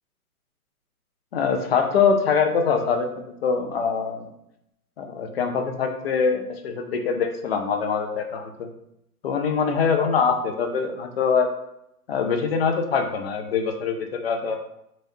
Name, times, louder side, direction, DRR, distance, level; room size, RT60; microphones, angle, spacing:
voice 1, 1.3-3.1 3.4-4.3 5.0-8.7 9.2-11.5 12.1-14.6, left 5 dB, 40° left, 4 dB, 0.6 m, -23 dB
4.1 x 3.1 x 2.7 m, 0.79 s
hypercardioid pair, 150°, 46 cm